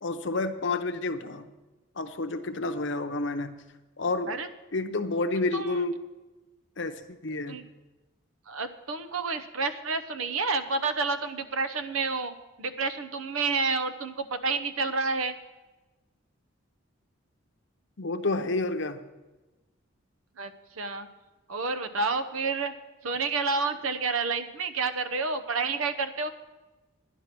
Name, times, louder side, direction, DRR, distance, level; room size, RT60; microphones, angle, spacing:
voice 1, 0.0-1.5 2.0-3.5 4.0-4.4 4.7-5.9 6.8-7.6 18.0-19.0, left 2 dB, 60° left, 7 dB, 0.8 m, -29 dB
voice 2, 8.5-15.4 20.4-21.1 21.5-22.7 23.0-26.3, right 4 dB, 85° right, 10 dB, 0.9 m, -29 dB
11.5 x 10.0 x 5.9 m, 1.1 s
head